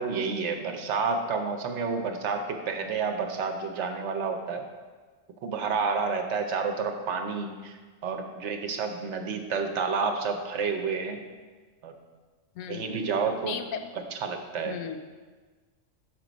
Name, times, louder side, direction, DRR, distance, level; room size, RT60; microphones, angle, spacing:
voice 1, 0.0-4.6 5.4-7.8 8.0-11.2 11.8-11.9 12.7-13.5 14.2-14.8, right 5 dB, 65° right, 5 dB, 0.9 m, -30 dB
voice 2, 12.5-13.0 13.4-13.9 14.6-15.0, left 8 dB, 80° left, 8 dB, 1.0 m, -36 dB
6.0 x 5.0 x 5.1 m, 1.4 s
omnidirectional pair, 1.4 m